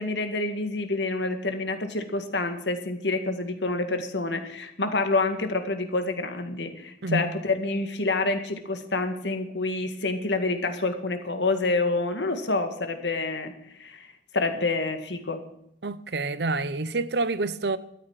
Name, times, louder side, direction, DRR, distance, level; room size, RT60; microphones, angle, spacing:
voice 1, 0.0-13.5 13.8-14.1 14.3-15.4, left 3 dB, 85° left, 2.0 m, -27 dB
voice 2, 15.8-17.8, right 2 dB, 70° right, 0.8 m, -27 dB
13.0 x 9.4 x 9.0 m
head